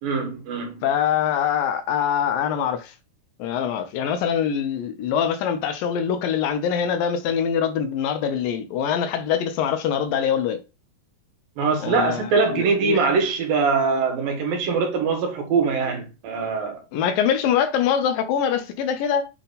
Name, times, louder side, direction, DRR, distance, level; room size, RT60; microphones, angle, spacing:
voice 1, 0.0-0.8 11.6-16.8, right 4 dB, 85° right, 3.4 m, -23 dB
voice 2, 0.8-2.9 3.4-10.6 11.8-13.0 16.9-19.3, left 8 dB, 80° left, 2.6 m, -24 dB
7.9 x 4.0 x 4.1 m
omnidirectional pair, 4.0 m